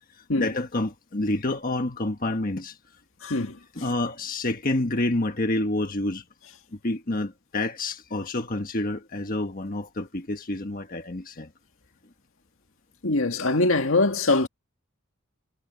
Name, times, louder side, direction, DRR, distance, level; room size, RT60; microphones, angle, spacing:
voice 1, 0.4-2.8 3.7-6.2 6.7-11.5, left 2 dB, 40° left, 1.4 m, -28 dB
voice 2, 3.2-3.6 13.0-14.5, left 2 dB, 70° left, 1.9 m, -22 dB
head